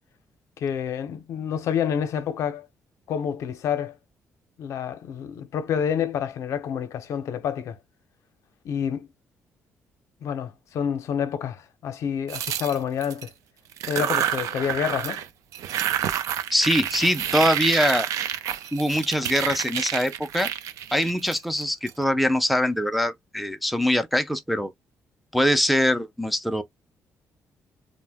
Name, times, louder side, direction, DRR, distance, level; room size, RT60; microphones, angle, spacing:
voice 1, 0.6-2.7 3.1-3.9 4.6-7.8 8.6-9.1 10.2-13.3 13.9-15.2, left 8 dB, 65° left, 0.6 m, -28 dB
sound 1, 12.3-13.3 13.7-15.3 15.5-21.9, right 10 dB, 85° right, 0.4 m, -28 dB
voice 2, 16.5-18.1 18.7-20.5 20.9-24.7 25.3-26.6, equal, ahead, 0.3 m, -23 dB
2.5 x 2.1 x 3.3 m
cardioid pair, 140°, 5 cm